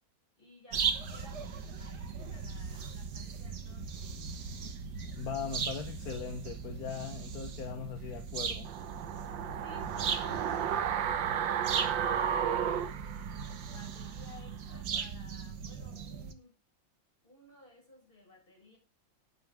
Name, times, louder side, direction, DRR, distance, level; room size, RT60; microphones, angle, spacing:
voice 1, 0.4-4.1 9.3-16.5 17.2-18.8, left 2 dB, 25° left, -2 dB, 7.0 m, -56 dB
sound 1, 0.7-16.3, right 6 dB, 60° right, 1.8 m, -38 dB
voice 2, 5.2-8.7, left 7 dB, 55° left, 8 dB, 1.6 m, -39 dB
sound 2, 8.6-13.8 14.1-14.2, right 8 dB, 80° right, 1.6 m, -33 dB
11.5 x 9.5 x 3.6 m, 0.29 s
omnidirectional pair, 2.0 m